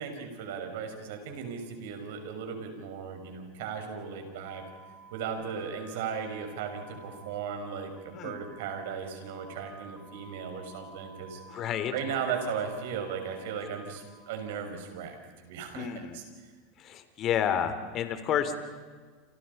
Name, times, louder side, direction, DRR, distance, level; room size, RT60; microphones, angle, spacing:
voice 1, 0.0-4.6 5.1-11.4 11.9-15.2 15.4-16.2, right 6 dB, 75° right, 5 dB, 6.3 m, -36 dB
sound 1, 4.4-14.6, right 2 dB, 10° right, 2.8 m, -53 dB
voice 2, 11.5-11.9 15.7-16.2 16.8-18.6, left 9 dB, 45° left, 10 dB, 3.3 m, -30 dB
30.0 x 28.0 x 5.6 m, 1.5 s
hypercardioid pair, 105°, 0 cm